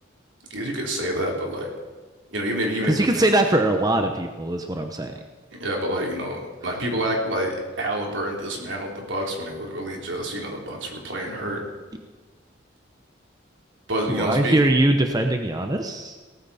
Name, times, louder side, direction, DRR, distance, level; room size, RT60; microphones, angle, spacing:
voice 1, 0.5-1.7 2.3-3.2 5.5-11.6 13.9-14.6, right 1 dB, 75° right, 0 dB, 3.4 m, -28 dB
voice 2, 2.8-5.1 14.1-16.1, right 1 dB, 20° right, 5 dB, 0.8 m, -21 dB
18.0 x 14.0 x 4.2 m, 1.4 s
head